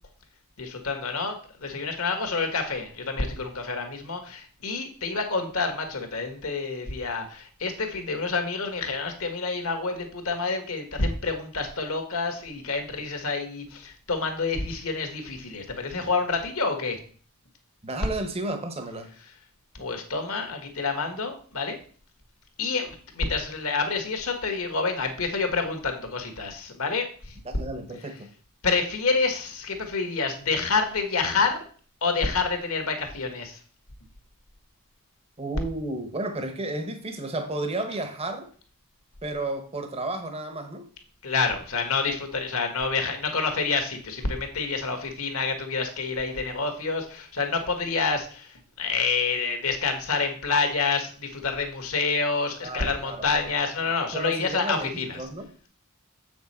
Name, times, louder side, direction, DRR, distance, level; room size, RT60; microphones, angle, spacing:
voice 1, 0.6-17.0 19.7-21.8 22.6-27.3 28.6-31.6 32.0-33.6 41.2-55.2, left 4 dB, 65° left, 1.5 m, -28 dB
voice 2, 17.8-19.1 27.4-28.3 35.4-38.5 39.2-40.9 52.6-53.5 54.1-55.5, right 2 dB, 25° right, 0.9 m, -32 dB
7.4 x 6.1 x 4.3 m
head